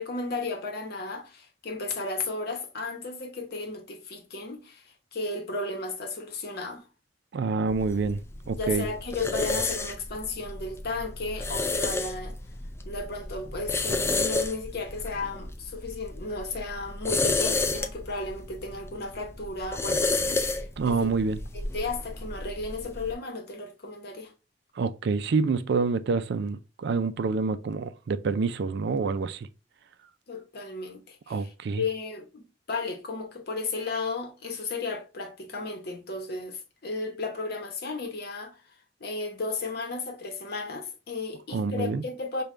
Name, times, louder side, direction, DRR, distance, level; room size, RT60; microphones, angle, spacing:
voice 1, 0.0-6.9 8.6-12.4 12.8-21.1 21.5-24.3 30.3-38.6 39.0-42.4, left 3 dB, 60° left, 0.9 m, -34 dB
voice 2, 7.3-8.2 8.5-8.8 20.8-21.4 24.8-29.5 31.3-31.8 41.5-42.0, right 4 dB, 65° right, 0.4 m, -27 dB
sound 1, 7.7-23.1, left 3 dB, 15° left, 0.4 m, -31 dB
5.1 x 2.3 x 3.1 m
head